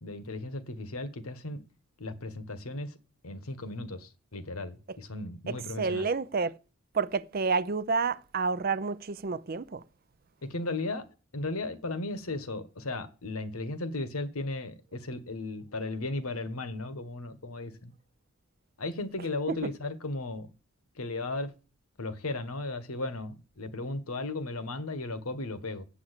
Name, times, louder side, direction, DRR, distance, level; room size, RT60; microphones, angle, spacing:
voice 1, 0.0-1.6 2.0-3.0 3.2-6.1 10.4-11.1 11.3-17.9 18.8-20.5 20.9-21.5 22.0-25.8, left 2 dB, 90° left, 1.3 m, -36 dB
voice 2, 5.5-6.6 6.9-9.8, right 4 dB, 45° right, 0.5 m, -29 dB
8.5 x 6.2 x 8.1 m
head